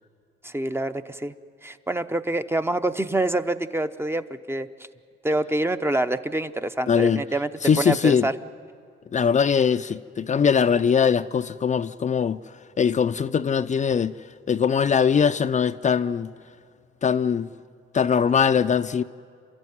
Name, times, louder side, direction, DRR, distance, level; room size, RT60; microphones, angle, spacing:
voice 1, 0.4-1.3 1.6-4.7 5.2-7.5 7.8-8.3, right 2 dB, 10° right, 0.8 m, -26 dB
voice 2, 6.9-7.2 7.6-8.3 9.1-12.4 12.8-14.1 14.5-16.3 17.0-17.5 17.9-19.0, left 7 dB, 40° left, 0.5 m, -21 dB
29.0 x 13.5 x 9.4 m
cardioid pair, 90°, 20 cm